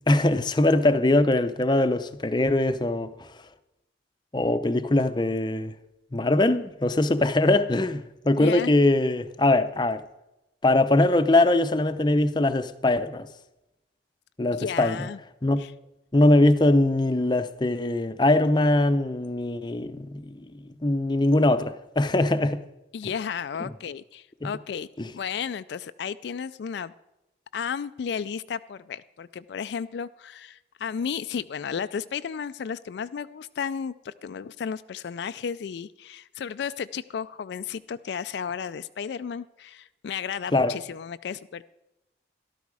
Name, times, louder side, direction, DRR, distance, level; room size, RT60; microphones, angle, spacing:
voice 1, 0.1-3.3 4.3-5.7 6.1-10.0 10.6-13.3 14.4-15.1 15.4-15.6 16.1-22.6 24.4-24.5 25.0-25.1 40.5-40.7, left 2 dB, 25° left, 0.6 m, -22 dB
voice 2, 8.4-8.7 14.5-15.2 15.6-15.7 22.9-24.9 25.1-26.9 27.5-41.6, left 7 dB, 65° left, 0.3 m, -33 dB
13.5 x 12.0 x 4.8 m
head